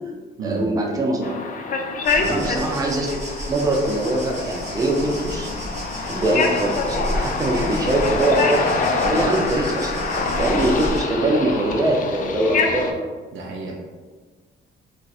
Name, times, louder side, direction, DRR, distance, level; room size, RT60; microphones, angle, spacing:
voice 1, 0.4-1.3 2.2-3.1 3.5-5.5 6.1-8.7 9.0-12.9, right 1 dB, 20° right, 0 dB, 0.5 m, -22 dB
sound 1, 1.2-12.9, left 4 dB, 40° left, 0.4 m, -25 dB
sound 2, 2.0-11.0, equal, 35° right, 1.0 m, -32 dB
voice 2, 2.1-2.7 13.3-13.7, right 2 dB, 75° right, -1 dB, 0.5 m, -30 dB
3.9 x 2.2 x 2.4 m, 1.4 s
cardioid pair, 90°, 20 cm